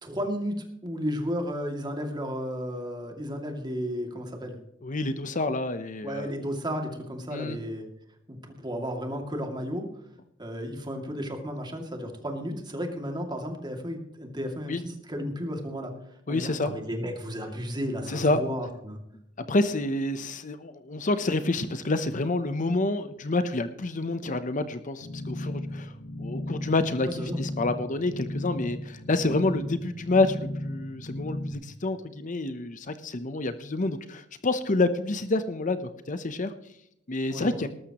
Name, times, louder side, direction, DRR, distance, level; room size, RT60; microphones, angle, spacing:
voice 1, 0.0-4.6 6.0-7.9 8.3-9.9 10.4-15.9 16.3-19.0 27.1-27.4 37.3-37.5, equal, 25° right, 3 dB, 2.4 m, -33 dB
voice 2, 4.8-6.3 7.3-7.6 14.7-14.8 16.3-16.7 18.1-18.4 19.4-25.9 26.2-36.5 37.1-37.7, left 2 dB, 40° left, 11 dB, 0.8 m, -28 dB
sound 1, 25.0-31.5, left 1 dB, 65° left, 1.9 m, -35 dB
19.5 x 13.0 x 3.0 m, 0.80 s
head